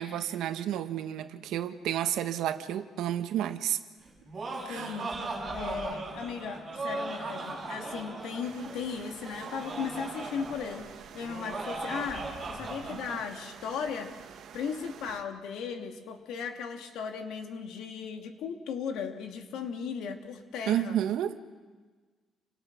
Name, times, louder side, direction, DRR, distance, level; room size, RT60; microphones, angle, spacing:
voice 1, 0.0-3.8 4.6-5.0 12.9-13.0 20.7-21.4, right 11 dB, 80° right, 8 dB, 1.5 m, -31 dB
Laughter, 4.0-13.2, right 3 dB, 25° right, 7.4 m, -38 dB
voice 2, 4.7-10.9 11.1-14.2 14.5-21.0, left 6 dB, 80° left, 5 dB, 2.5 m, -37 dB
sound 1, 8.4-15.2, right 8 dB, 60° right, 1.9 m, -49 dB
29.5 x 25.0 x 6.2 m, 1.4 s
cardioid pair, 150°, 0 cm